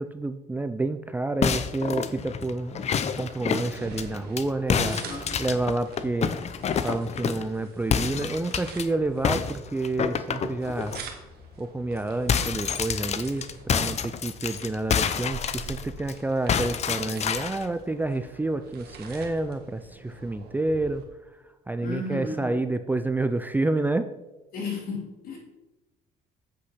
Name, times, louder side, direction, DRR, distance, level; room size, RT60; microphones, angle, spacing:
voice 1, 0.0-2.8 3.2-5.0 5.4-6.3 6.8-11.0 11.6-21.0 21.7-24.1, right 2 dB, 10° right, 9 dB, 0.4 m, -29 dB
sound 1, 1.4-4.4 4.7-7.5 7.9-8.8 9.2-11.0 11.4-11.6 11.8-16.1 16.5-17.7, left 7 dB, 40° left, 0.6 m, -28 dB
sound 2, 3.2-21.0, right 4 dB, 70° right, 1.7 m, -46 dB
voice 2, 4.7-5.3 21.8-22.4 24.5-25.4, left 3 dB, 60° left, 0 dB, 3.1 m, -33 dB
8.1 x 6.3 x 5.7 m, 1.0 s
cardioid pair, 110°, 17 cm